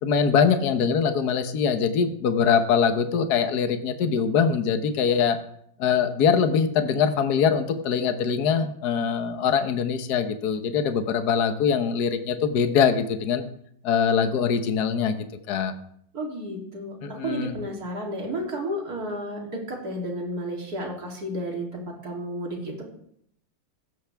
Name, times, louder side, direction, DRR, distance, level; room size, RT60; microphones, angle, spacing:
voice 1, 0.0-5.4 5.8-13.4 13.8-15.2 15.5-15.7 17.0-17.5, left 6 dB, 60° left, 8 dB, 1.5 m, -23 dB
voice 2, 16.1-17.0 17.2-22.8, equal, 50° right, -1 dB, 3.6 m, -32 dB
16.0 x 14.0 x 3.5 m, 0.67 s
omnidirectional pair, 2.1 m